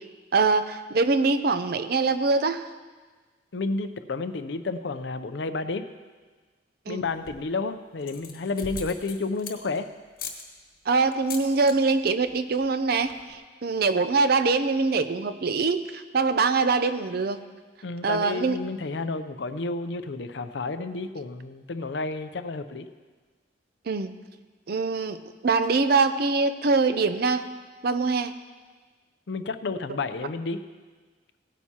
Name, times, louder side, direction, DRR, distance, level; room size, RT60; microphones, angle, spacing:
voice 1, 0.3-2.6 6.9-7.0 10.9-13.1 13.6-17.4 18.0-18.6 23.9-24.1 24.7-25.2 25.4-27.4 27.8-28.3, right 4 dB, 55° right, 11 dB, 0.5 m, -23 dB
voice 2, 3.5-5.9 6.9-9.9 17.8-22.9 29.3-30.6, left 3 dB, 70° left, 11 dB, 0.6 m, -31 dB
sound 1, 7.0-7.5 8.0-9.8 10.2-10.4 11.1-11.8 12.0-12.4 12.6-12.7 12.9-13.3, left 5 dB, 50° left, 1.2 m, -39 dB
17.0 x 9.1 x 2.9 m, 1.4 s
head